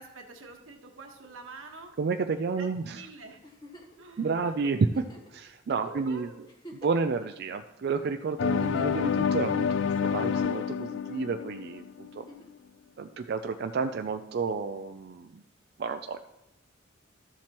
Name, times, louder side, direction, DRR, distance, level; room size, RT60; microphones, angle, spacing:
voice 1, 0.0-1.9 2.5-3.4 4.0-4.7 5.8-6.4 8.7-8.9, right 3 dB, 90° right, 3 dB, 1.4 m, -47 dB
voice 2, 2.0-3.0 4.2-5.0 5.3-6.3 6.7-12.2 13.0-15.4 15.8-16.2, right 4 dB, 55° right, 7 dB, 0.3 m, -31 dB
Giggle, 3.4-4.0 4.9-5.4 6.0-6.1 6.4-7.2 8.4-9.0 10.2-10.8 12.1-12.6 14.1-14.2, equal, 20° left, 1.2 m, -48 dB
sound 1, 8.4-12.2, left 7 dB, 65° left, 0.3 m, -28 dB
13.0 x 7.4 x 3.0 m, 0.91 s
head